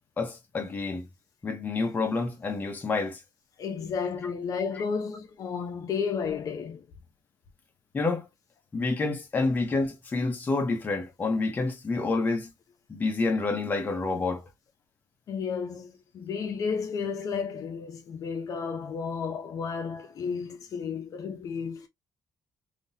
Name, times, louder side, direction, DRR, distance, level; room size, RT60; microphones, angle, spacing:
voice 1, 0.2-1.1 1.4-3.2 4.8-4.9 7.9-8.3 8.7-12.5 12.9-14.4, left 3 dB, 25° left, 1.0 m, -28 dB
voice 2, 3.6-6.9 15.3-21.9, left 6 dB, 55° left, 0.8 m, -32 dB
3.6 x 2.9 x 2.7 m
cardioid pair, 165°, 7 cm